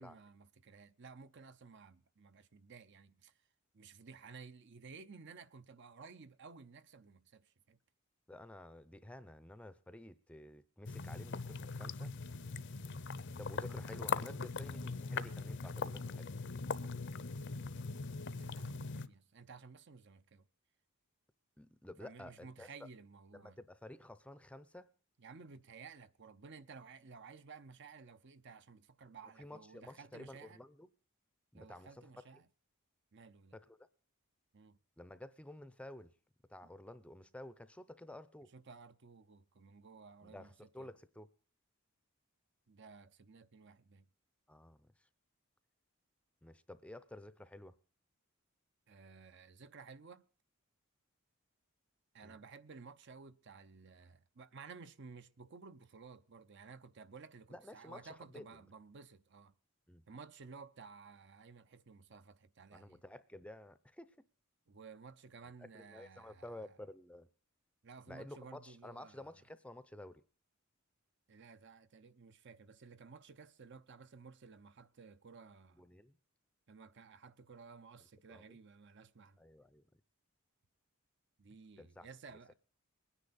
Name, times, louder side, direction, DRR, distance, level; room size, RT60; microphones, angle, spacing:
voice 1, 0.0-3.3 3.7-7.8 18.3-20.5 22.0-23.6 25.2-30.6 31.5-32.5 33.1-33.6 34.5-34.8 36.6-36.7 38.5-40.5 40.8-40.9 42.7-44.1 48.9-50.3 52.1-59.5 60.1-63.0 64.7-66.7 67.8-69.3 71.3-75.9 76.7-79.4 81.4-82.5, right 5 dB, 55° right, 0.7 m, -55 dB
voice 2, 8.3-12.1 13.4-16.3 21.6-22.9 23.3-24.9 29.4-30.9 31.5-32.0 33.5-33.9 35.0-36.1 36.5-38.5 40.2-41.3 44.5-45.1 46.4-47.8 52.2-52.4 57.5-58.4 59.9-60.0 62.7-64.1 65.6-67.3 68.1-70.2 75.7-76.2 78.3-78.6 79.4-79.8 81.8-82.1, left 1 dB, 5° left, 0.6 m, -52 dB
sound 1, 10.8-19.1, left 4 dB, 55° left, 0.7 m, -41 dB
22.0 x 9.9 x 4.1 m
head